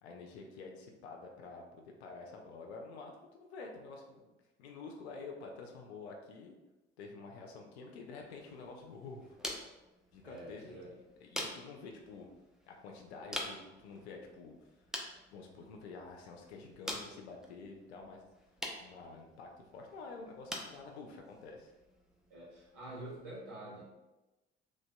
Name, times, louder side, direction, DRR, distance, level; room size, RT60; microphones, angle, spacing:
voice 1, 0.0-3.1 3.4-4.3 4.6-6.5 7.0-9.4 10.1-10.8 11.2-12.3 12.7-14.5 15.3-18.2 18.8-21.7, left 4 dB, 85° left, 1 dB, 0.5 m, -49 dB
sound 1, 8.2-23.2, equal, ahead, 0.5 m, -47 dB
voice 2, 10.2-10.9 22.3-23.9, right 1 dB, 75° right, -7 dB, 1.4 m, -47 dB
3.2 x 2.7 x 2.2 m, 1.0 s
hypercardioid pair, 50°, 31 cm